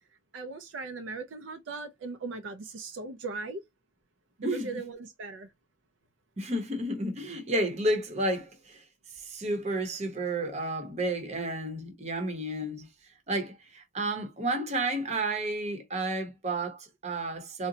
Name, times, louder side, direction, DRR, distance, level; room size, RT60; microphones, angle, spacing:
voice 1, 0.3-3.6 4.4-5.5, right 3 dB, 70° right, 0.4 m, -38 dB
voice 2, 4.4-4.8 6.4-8.8 9.2-12.9 13.3-17.7, right 1 dB, 35° right, 0.8 m, -31 dB
3.8 x 2.1 x 2.6 m
head